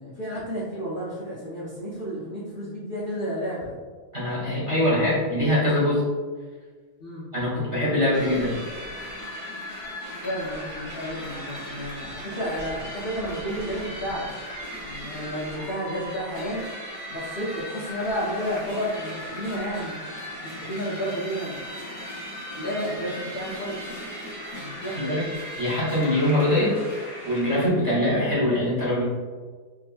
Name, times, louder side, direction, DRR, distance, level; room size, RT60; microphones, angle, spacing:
voice 1, 0.0-3.7 7.0-7.2 10.2-14.3 14.8-16.6 17.1-21.6 22.6-23.8 24.5-25.1, equal, 65° left, -7 dB, 0.5 m, -31 dB
voice 2, 4.1-6.0 7.3-8.6 25.0-25.2 25.6-26.7 27.2-29.0, left 1 dB, 25° right, -7 dB, 0.9 m, -23 dB
sound 1, 8.1-27.7, equal, 40° left, 1.0 m, -37 dB
3.6 x 2.8 x 2.5 m, 1.5 s
omnidirectional pair, 1.9 m